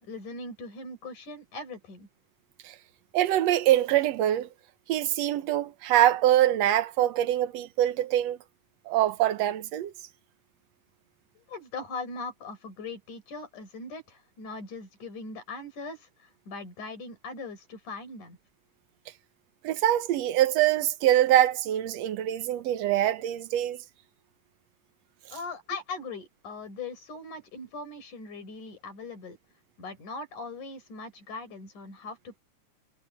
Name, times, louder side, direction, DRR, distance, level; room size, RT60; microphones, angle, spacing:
voice 1, 0.0-2.1 11.4-18.4 25.3-29.4 29.8-32.4, left 3 dB, 80° left, 6.5 m, -40 dB
voice 2, 3.1-4.5 4.9-8.4 8.9-9.9 19.6-23.8, right 13 dB, 65° right, 2.0 m, -24 dB
omnidirectional pair, 3.5 m